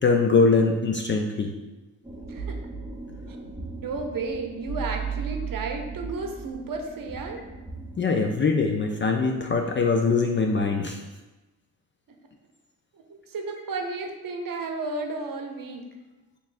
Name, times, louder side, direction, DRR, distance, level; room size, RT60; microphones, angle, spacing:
voice 1, 0.0-1.5 8.0-11.0, left 4 dB, 25° left, 3 dB, 0.4 m, -22 dB
sound 1, 2.0-8.0, right 5 dB, 5° right, 0.8 m, -36 dB
voice 2, 3.8-7.4 12.9-15.9, right 3 dB, 45° right, 3 dB, 0.8 m, -33 dB
5.2 x 3.1 x 2.5 m, 1.1 s
hypercardioid pair, 45°, 46 cm